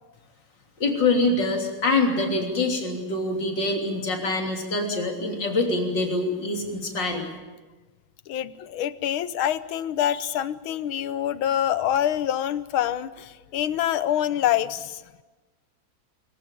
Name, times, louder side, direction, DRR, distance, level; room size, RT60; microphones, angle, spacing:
voice 1, 0.8-7.3, left 2 dB, 60° left, 2 dB, 3.8 m, -25 dB
voice 2, 8.3-15.0, left 11 dB, 90° left, 15 dB, 1.7 m, -26 dB
24.5 x 15.5 x 8.9 m, 1.2 s
omnidirectional pair, 2.2 m